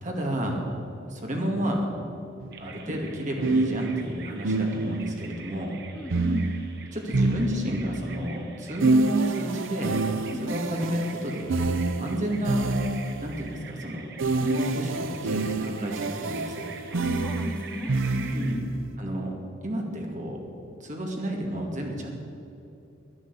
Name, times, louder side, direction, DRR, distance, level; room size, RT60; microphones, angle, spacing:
voice 1, 0.0-0.6 1.1-1.9 2.6-5.8 6.9-10.0 10.4-12.6 13.2-14.1 14.4-16.7 18.3-18.5 19.0-19.3 19.6-20.4 20.8-22.2, equal, 40° right, 0 dB, 2.3 m, -31 dB
sound 1, 2.4-2.6 3.4-5.2 6.1-8.0 8.8-13.3 14.2-18.7, right 3 dB, 80° right, 0.7 m, -27 dB
Bird vocalization bird call bird song, 2.5-18.6, right 4 dB, 55° right, 1.2 m, -45 dB
voice 2, 5.9-6.5 10.2-10.5 16.9-18.5, left 1 dB, 5° left, 2 dB, 1.4 m, -34 dB
11.5 x 10.0 x 8.3 m, 2.8 s
head